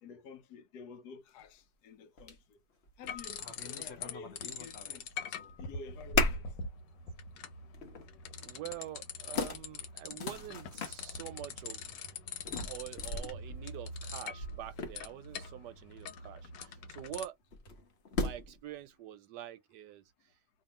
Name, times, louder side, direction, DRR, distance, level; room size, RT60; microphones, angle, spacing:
voice 1, 0.0-2.6 3.0-5.1 5.6-6.4, left 5 dB, 75° left, 1.1 m, -50 dB
sound 1, 1.4-1.5 2.2-2.4 2.8-5.0 5.3-5.7 6.1-6.6 7.1-7.2 7.7-8.1 8.9-9.0 9.4-11.0 12.4-15.3 17.5-18.6, left 3 dB, 50° left, 0.9 m, -37 dB
sound 2, 3.1-4.1 4.4-17.2, left 4 dB, 90° left, 1.4 m, -44 dB
voice 2, 8.4-12.0 12.5-17.3 18.1-20.0, right 12 dB, 80° right, 1.3 m, -46 dB
2.9 x 2.7 x 4.2 m
omnidirectional pair, 1.8 m